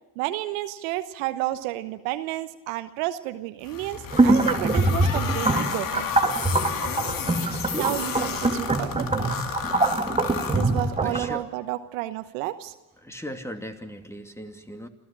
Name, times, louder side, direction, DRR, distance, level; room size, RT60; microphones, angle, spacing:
voice 1, 0.2-6.0 7.4-9.3 10.5-12.7, right 16 dB, 75° right, 11 dB, 1.1 m, -31 dB
sound 1, 3.6-11.2, left 7 dB, 55° left, 2.3 m, -32 dB
sound 2, 4.1-11.3, right 2 dB, 15° right, 2.3 m, -24 dB
voice 2, 11.0-11.4 13.0-14.9, equal, 5° left, 6 dB, 2.6 m, -37 dB
27.5 x 15.0 x 8.8 m, 1.1 s
hypercardioid pair, 55°, 40 cm